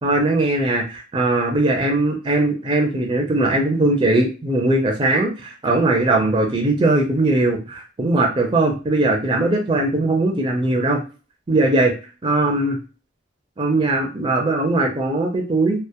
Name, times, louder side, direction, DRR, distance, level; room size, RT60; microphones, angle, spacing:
voice 1, 0.0-11.0 11.5-11.9 12.2-12.8 13.6-15.8, right 2 dB, 25° right, 1 dB, 0.4 m, -20 dB
2.1 x 2.0 x 2.8 m, 0.34 s
head